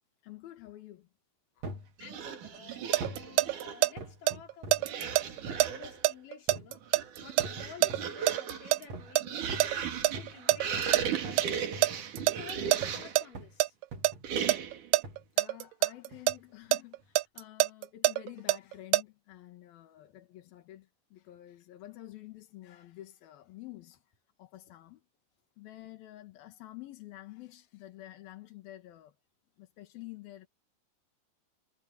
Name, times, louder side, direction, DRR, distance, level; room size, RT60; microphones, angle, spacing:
voice 1, 0.2-1.1 1.6-1.7 12.7-13.1 15.4-24.0 24.4-25.0 25.6-29.1 29.6-30.5, left 15 dB, 90° left, 3.4 m, -49 dB
sound 1, 1.6-1.9 3.0-3.3 4.0-4.9 5.5-5.7 6.5-6.8 7.4-8.2 8.9-9.2 9.5-13.1 13.3-13.6 13.9-14.3 15.0-15.3 16.1-16.4 17.0-17.1, right 2 dB, 45° right, 4.0 m, -44 dB
voice 2, 2.0-13.8, left 6 dB, 65° left, 5.2 m, -52 dB
sound 2, 2.0-3.9 4.8-6.0 6.8-13.3 14.2-14.9, right 8 dB, 65° right, 3.6 m, -37 dB
sound 3, 2.5-3.9 4.3-8.8 9.2-11.0 11.4-11.5 11.8-13.2 13.6-14.1 14.5-16.3 16.7-19.0, right 18 dB, 80° right, 2.1 m, -25 dB
omnidirectional pair, 4.1 m